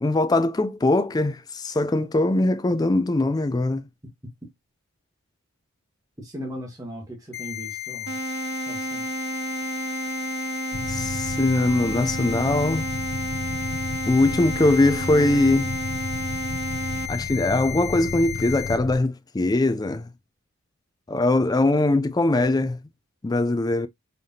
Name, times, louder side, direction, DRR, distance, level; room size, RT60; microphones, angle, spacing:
voice 1, 0.0-3.9 10.9-12.9 14.1-15.7 17.1-20.1 21.1-22.8 23.2-23.9, left 2 dB, 20° left, 0.3 m, -21 dB
voice 2, 6.2-8.2 8.7-9.0, equal, 15° right, 1.5 m, -37 dB
sound 1, 7.3-18.7, left 14 dB, 50° left, 1.1 m, -34 dB
sound 2, 8.1-17.1, right 4 dB, 50° right, 0.4 m, -32 dB
sound 3, 10.7-18.9, left 2 dB, 70° left, 0.8 m, -33 dB
5.4 x 3.3 x 2.8 m
head